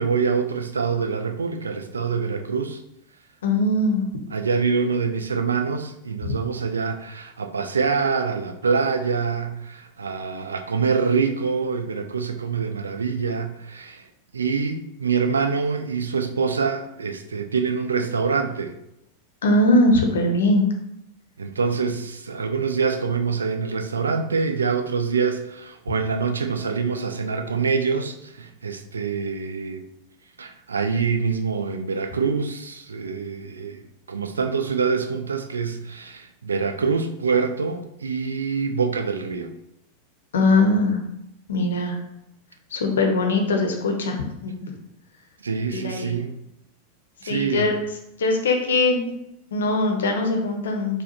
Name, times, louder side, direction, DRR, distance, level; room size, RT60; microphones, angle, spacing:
voice 1, 0.0-2.8 4.3-14.0 14.3-18.7 21.4-29.8 30.4-33.8 34.1-39.5 45.4-46.3 47.2-47.7, right 5 dB, 75° right, 7 dB, 0.3 m, -25 dB
voice 2, 3.4-4.1 19.4-20.6 40.3-41.0 41.5-42.0 42.7-44.7 45.7-46.2 47.3-47.8 48.2-49.1 49.5-51.0, left 2 dB, 65° left, 3 dB, 0.6 m, -21 dB
4.3 x 2.2 x 2.8 m, 0.81 s
figure-of-eight pair, 90°, 0 cm